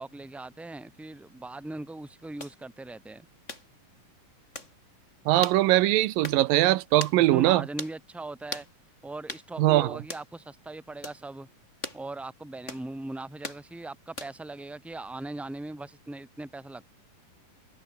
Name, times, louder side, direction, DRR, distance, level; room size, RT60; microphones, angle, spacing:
voice 1, 0.0-3.3 7.2-8.7 9.0-11.5 11.9-17.0, right 2 dB, ahead, 2.5 m, -39 dB
sound 1, 2.4-2.6 3.5-3.7 4.5-4.7 5.4-5.6 6.2-6.4 7.0-7.2 7.8-8.0 8.5-8.7 9.3-9.5 10.1-10.3 11.0-11.2 11.8-12.0 12.7-12.9 13.4-13.6 14.2-14.5, left 2 dB, 20° left, 4.9 m, -38 dB
voice 2, 5.3-7.6 9.6-10.0, right 16 dB, 85° right, 2.5 m, -21 dB
omnidirectional pair, 4.0 m